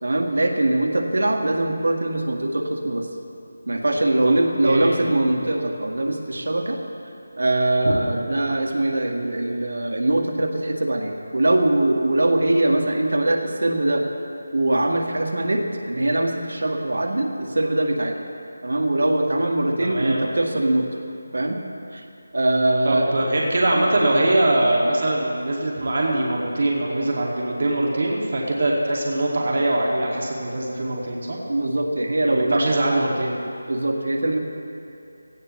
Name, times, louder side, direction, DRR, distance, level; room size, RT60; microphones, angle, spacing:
voice 1, 0.0-3.1 3.7-6.8 7.4-14.1 14.5-18.2 18.6-20.9 21.3-21.6 21.9-22.0 22.3-23.1 31.5-32.7 33.7-34.4, right 1 dB, 80° right, 3 dB, 1.8 m, -22 dB
voice 2, 4.6-5.0 7.8-7.9 19.8-20.2 22.8-31.4 32.3-33.3, right 1 dB, 50° right, -3 dB, 2.3 m, -22 dB
17.0 x 15.0 x 3.2 m, 2.6 s
figure-of-eight pair, 170°, 0 cm